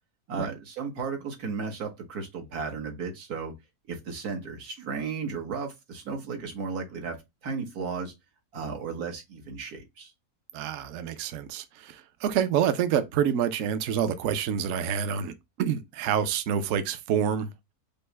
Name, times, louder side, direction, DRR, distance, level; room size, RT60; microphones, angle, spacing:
voice 1, 0.3-3.5 3.9-7.2 7.4-8.1 8.5-10.1, right 5 dB, 90° right, 1.6 m, -34 dB
voice 2, 10.5-17.5, right 8 dB, 65° right, 0.9 m, -27 dB
5.3 x 2.0 x 4.4 m
omnidirectional pair, 1.6 m